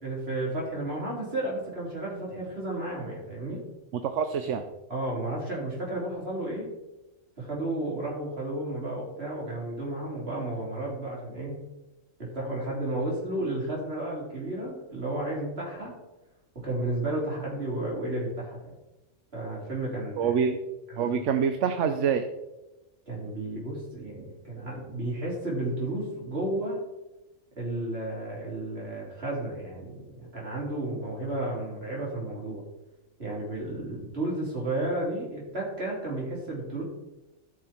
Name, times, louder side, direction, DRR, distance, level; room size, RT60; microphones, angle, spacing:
voice 1, 0.0-3.6 4.9-6.7 7.4-11.6 12.2-16.0 16.5-18.7 19.3-20.3 20.9-21.1 23.1-26.8 27.6-32.6 33.2-36.8, right 1 dB, 55° right, -4 dB, 4.1 m, -32 dB
voice 2, 3.9-4.6 20.2-20.6 21.0-22.2, right 7 dB, 75° right, 8 dB, 1.0 m, -26 dB
14.0 x 6.2 x 4.5 m, 0.99 s
omnidirectional pair, 1.3 m